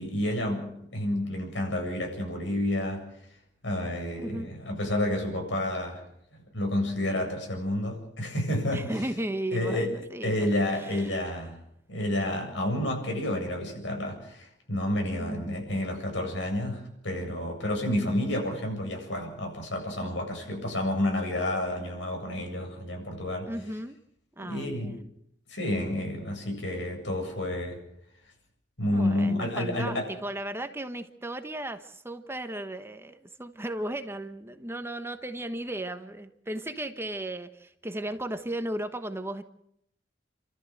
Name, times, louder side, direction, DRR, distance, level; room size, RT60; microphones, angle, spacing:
voice 1, 0.0-3.0 3.6-6.0 6.5-8.9 9.5-11.6 11.9-23.5 24.4-25.0 25.5-27.8 28.8-30.1, left 1 dB, 80° left, 2 dB, 7.9 m, -30 dB
voice 2, 4.2-4.5 8.7-10.4 10.8-11.3 15.1-15.5 23.4-24.0 24.4-25.0 28.9-39.4, right 1 dB, 15° right, 8 dB, 1.2 m, -35 dB
30.0 x 13.5 x 7.9 m, 0.76 s
head